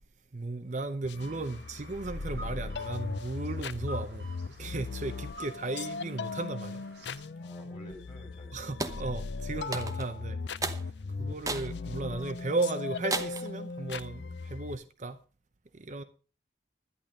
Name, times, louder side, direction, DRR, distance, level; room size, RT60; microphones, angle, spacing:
voice 1, 0.3-4.3 4.6-6.8 8.5-10.4 10.8-10.9 11.2-15.2 15.7-16.0, right 2 dB, 40° right, 0.7 m, -35 dB
sound 1, 1.0-14.8, left 4 dB, 75° left, 0.6 m, -38 dB
sound 2, 1.1-7.2, right 1 dB, 80° right, 7.9 m, -50 dB
voice 2, 7.4-8.6 10.1-10.2 11.0-11.1, equal, 25° left, 7.0 m, -51 dB
sound 3, 8.8-9.0 9.7-10.1 10.6-10.8 11.5-11.7 12.2-12.3 13.1-13.5, right 3 dB, 20° right, 1.0 m, -33 dB
11.5 x 10.5 x 5.1 m
head